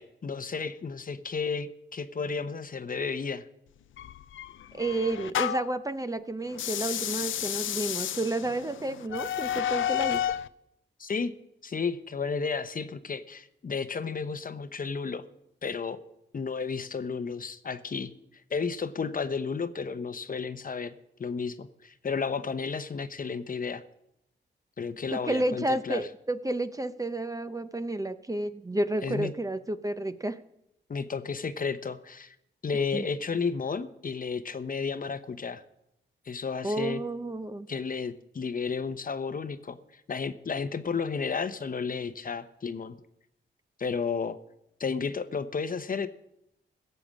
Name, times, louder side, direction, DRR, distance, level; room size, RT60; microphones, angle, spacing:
voice 1, 0.0-3.5 11.0-11.3 11.6-15.2 15.6-16.0 16.3-18.1 18.5-20.9 21.2-23.8 24.8-26.1 29.0-29.3 30.9-32.3 32.6-35.6 36.3-37.0 37.7-42.9 43.8-44.4 44.8-46.1, left 5 dB, 45° left, 11 dB, 0.9 m, -32 dB
sound 1, 4.0-5.8 6.5-10.5, left 10 dB, 85° left, 0.5 m, -31 dB
voice 2, 4.7-10.2 25.1-30.4 32.9-33.1 36.6-37.7, right 1 dB, 15° right, 11 dB, 0.7 m, -31 dB
16.5 x 6.9 x 7.4 m, 0.81 s
cardioid pair, 70°, 20 cm